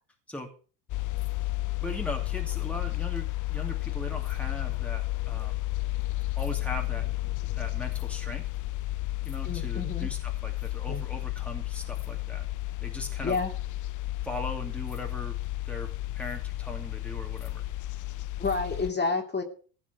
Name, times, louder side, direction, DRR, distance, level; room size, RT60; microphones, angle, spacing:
sound 1, 0.9-18.9, left 17 dB, 40° left, 0.7 m, -32 dB
voice 1, 1.8-5.6 6.4-7.1 7.6-8.4 9.2-12.5 12.8-13.4 14.2-15.4 15.7-15.9 16.1-17.6, left 1 dB, 5° left, 1 dB, 2.7 m, -39 dB
voice 2, 9.4-10.1 10.9-11.0 13.2-13.5 18.4-19.4, left 3 dB, 20° left, 4 dB, 2.8 m, -29 dB
15.5 x 6.0 x 7.9 m, 0.40 s
hypercardioid pair, 85°, 49 cm